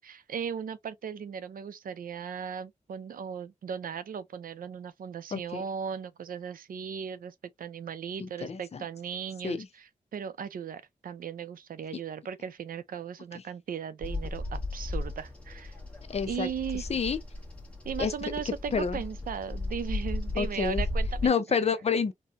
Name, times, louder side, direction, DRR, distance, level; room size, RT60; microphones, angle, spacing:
voice 1, 0.0-15.8 16.3-16.8 17.8-21.3, right 7 dB, 85° right, 0.5 m, -37 dB
voice 2, 5.3-5.6 8.2-8.9 9.4-9.7 16.1-16.5 16.8-17.2 18.0-19.0 20.4-20.8 21.2-22.1, left 5 dB, 45° left, 0.6 m, -29 dB
Bird vocalization bird call bird song, 14.0-21.3, left 2 dB, 10° left, 1.1 m, -35 dB
4.2 x 2.1 x 2.5 m
wide cardioid pair, 135°, 14 cm